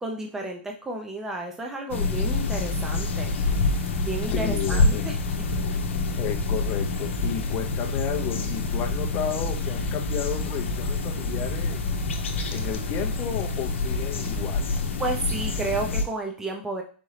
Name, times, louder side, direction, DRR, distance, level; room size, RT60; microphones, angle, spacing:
voice 1, 0.0-3.3 4.0-5.2 15.0-16.8, right 2 dB, 5° right, 0.6 m, -32 dB
sound 1, 1.9-16.1, left 3 dB, 80° left, 0.8 m, -27 dB
voice 2, 4.3-5.1 6.2-11.9 12.5-14.7, left 9 dB, 30° left, 0.6 m, -33 dB
4.2 x 3.6 x 3.2 m
hypercardioid pair, 135°, 7 cm